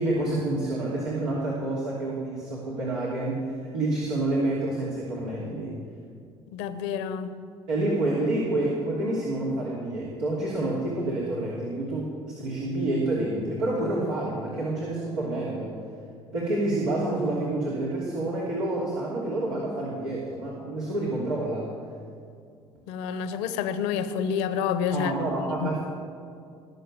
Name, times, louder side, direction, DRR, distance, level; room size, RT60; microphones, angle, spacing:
voice 1, 0.0-5.8 7.7-15.8 16.3-21.7 24.9-25.8, right 2 dB, 80° right, -6 dB, 3.0 m, -28 dB
voice 2, 6.5-7.3 22.9-25.1 25.6-25.7, left 7 dB, 70° left, 11 dB, 1.0 m, -28 dB
19.5 x 6.9 x 8.8 m, 2.3 s
hypercardioid pair, 55°, 14 cm